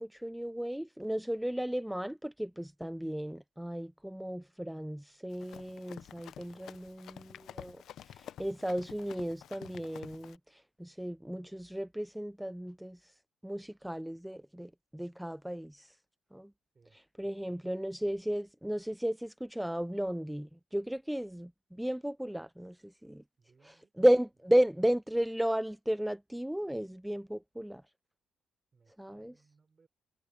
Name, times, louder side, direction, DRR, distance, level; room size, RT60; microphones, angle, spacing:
voice 1, 0.0-7.8 8.2-10.4 10.8-13.0 13.4-15.9 16.3-16.5 17.2-23.2 24.0-27.8 29.0-29.3, equal, 5° right, 0.4 m, -34 dB
Run, 5.3-10.4, left 10 dB, 70° left, 0.6 m, -50 dB
voice 2, 17.2-17.6 23.4-23.9 28.7-29.9, right 4 dB, 35° right, 6.3 m, -66 dB
cardioid pair, 90°, 0 cm